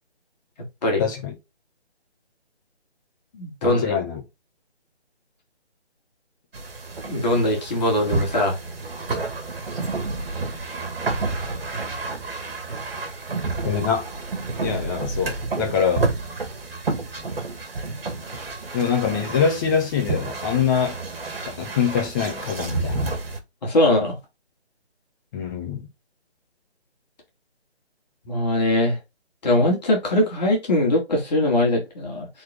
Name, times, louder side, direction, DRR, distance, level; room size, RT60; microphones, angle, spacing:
voice 1, 1.0-1.4 3.6-4.2 13.6-14.1 14.6-16.1 18.7-21.0 21.4-23.1 25.3-25.9, left 7 dB, 20° left, 1.6 m, -24 dB
voice 2, 3.3-3.9 7.1-8.6 23.6-24.2 28.3-29.0 29.4-32.3, left 1 dB, 40° left, 2.7 m, -21 dB
sound 1, 6.5-23.4, right 3 dB, 60° right, 2.0 m, -30 dB
6.4 x 4.3 x 3.8 m
figure-of-eight pair, 160°, 33 cm